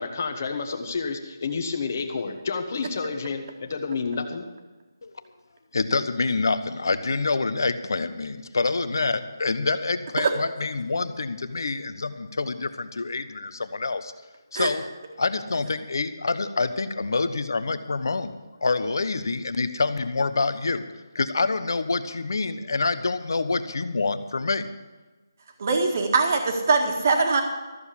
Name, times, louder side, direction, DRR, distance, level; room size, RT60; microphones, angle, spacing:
voice 1, 0.0-4.5, left 4 dB, 35° left, 4 dB, 1.3 m, -30 dB
voice 2, 5.7-14.1 14.5-14.8 15.2-18.3 18.6-20.8 21.1-24.7, left 3 dB, 65° left, 11 dB, 1.0 m, -26 dB
voice 3, 25.6-27.4, right 4 dB, 35° right, 4 dB, 1.7 m, -22 dB
14.0 x 7.3 x 8.4 m, 1.2 s
hypercardioid pair, 170°, 2 cm